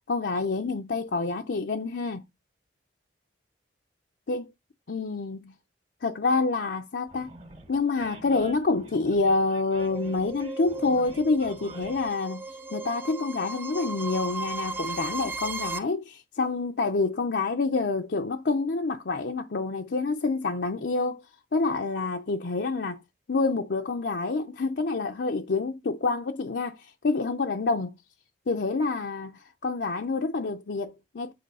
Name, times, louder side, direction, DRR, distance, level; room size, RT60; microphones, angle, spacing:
voice 1, 0.1-2.2 4.3-4.5 4.9-5.6 6.0-7.3 7.7-12.5 12.7-21.2 21.5-23.0 23.3-28.0 28.5-31.3, left 3 dB, 65° left, 0.5 m, -27 dB
Animal, 7.1-12.1, right 1 dB, 35° right, 2.0 m, -46 dB
sound 1, 9.8-15.8, right 3 dB, 10° right, 0.5 m, -36 dB
7.7 x 3.2 x 5.4 m
head